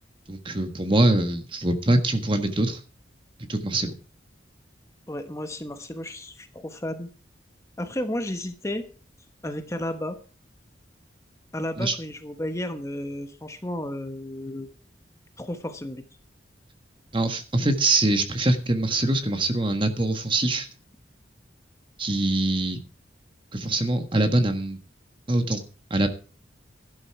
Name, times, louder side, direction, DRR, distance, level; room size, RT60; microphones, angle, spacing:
voice 1, 0.3-2.8 3.5-3.9 11.8-11.9 17.1-20.7 22.0-22.8 23.5-24.8 25.3-25.6 25.9-26.1, right 2 dB, 30° right, 8 dB, 1.5 m, -23 dB
voice 2, 5.1-7.1 7.8-8.9 9.4-10.2 11.5-14.7 15.4-16.0, left 1 dB, 15° left, 8 dB, 1.1 m, -32 dB
12.5 x 11.5 x 4.8 m, 0.35 s
head